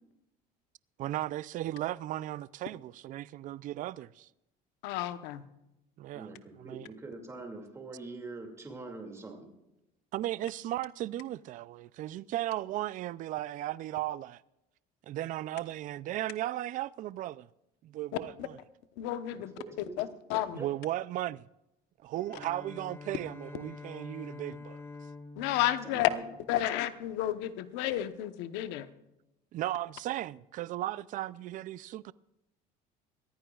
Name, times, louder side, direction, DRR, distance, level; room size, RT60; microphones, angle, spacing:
voice 1, 1.0-4.3 6.0-6.3 6.6-6.9 10.1-14.4 15.0-17.5 17.8-18.5 20.5-21.4 22.0-24.8 29.5-32.1, right 14 dB, 50° right, 0.4 m, -36 dB
voice 2, 4.8-5.4 18.4-18.5 19.0-19.6 20.0-20.6 25.4-26.1 26.5-28.9, left 13 dB, 85° left, 1.0 m, -31 dB
voice 3, 6.1-9.5 19.3-20.0 20.6-20.7 25.8-26.2, right 3 dB, 15° right, 2.4 m, -44 dB
Bowed string instrument, 22.2-27.1, left 3 dB, 15° left, 1.5 m, -47 dB
22.5 x 15.0 x 2.4 m
cardioid pair, 130°, 18 cm